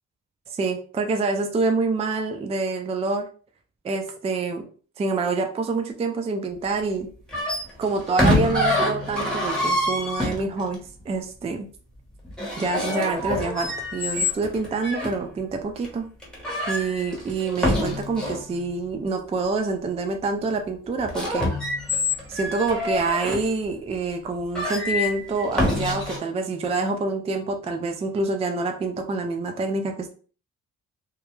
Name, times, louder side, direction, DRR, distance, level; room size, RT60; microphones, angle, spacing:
voice 1, 0.5-3.3 3.8-4.7 5.0-7.1 7.8-10.8 11.1-11.7 12.6-16.1 16.7-21.5 22.3-30.1, right 3 dB, 20° right, 5 dB, 0.4 m, -26 dB
sound 1, 7.3-10.8 12.2-15.1 15.8-15.9 16.2-18.5 21.0-23.5 24.1-24.2 24.5-26.2, left 1 dB, ahead, 1.0 m, -26 dB
2.3 x 2.0 x 3.0 m, 0.40 s
cardioid pair, 90°, 30 cm